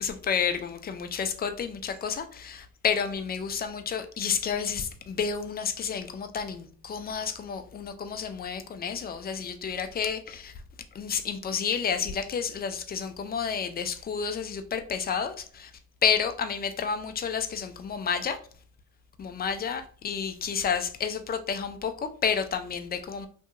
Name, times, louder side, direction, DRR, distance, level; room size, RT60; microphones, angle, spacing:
voice 1, 0.0-10.5 11.0-15.7 16.0-18.4 19.2-23.3, left 6 dB, 25° left, 0.4 m, -30 dB
2.7 x 2.6 x 2.5 m
hypercardioid pair, 60°, 36 cm